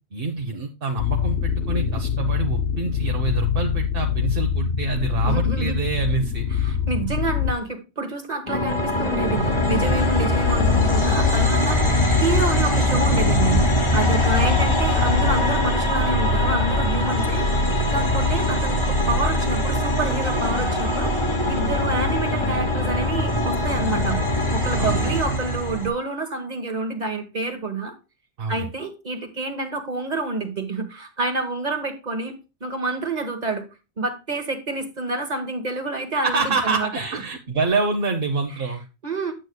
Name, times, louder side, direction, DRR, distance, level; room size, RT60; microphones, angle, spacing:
voice 1, 0.1-6.5 14.5-14.6 24.8-25.1 28.4-28.7 36.2-38.8, right 4 dB, 55° right, 3 dB, 1.0 m, -26 dB
sound 1, 1.0-7.5, left 7 dB, 70° left, 0.9 m, -24 dB
voice 2, 5.2-5.8 6.5-24.2 24.5-27.9 28.5-33.7 34.0-37.2 39.0-39.3, right 3 dB, 40° right, 5 dB, 1.3 m, -28 dB
sound 2, 8.5-25.9, left 1 dB, 25° left, 1.2 m, -21 dB
9.0 x 8.0 x 2.2 m, 0.28 s
omnidirectional pair, 1.2 m